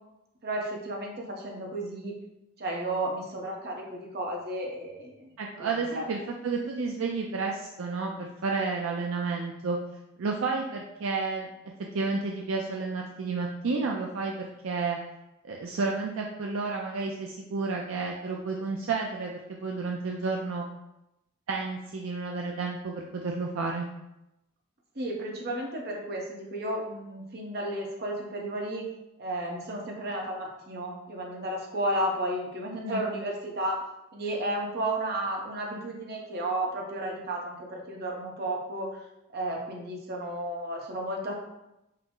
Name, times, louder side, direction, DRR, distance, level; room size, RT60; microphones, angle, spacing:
voice 1, 0.4-2.1 2.6-5.3 5.6-6.1 24.9-28.8 29.2-33.8 34.1-38.9 39.3-41.4, right 1 dB, 50° right, 0 dB, 0.8 m, -33 dB
voice 2, 5.4-9.8 10.2-11.5 11.9-15.0 15.4-20.6 21.5-23.9 32.9-33.0, right 4 dB, 70° right, 0 dB, 0.4 m, -31 dB
5.6 x 2.0 x 3.7 m, 0.91 s
head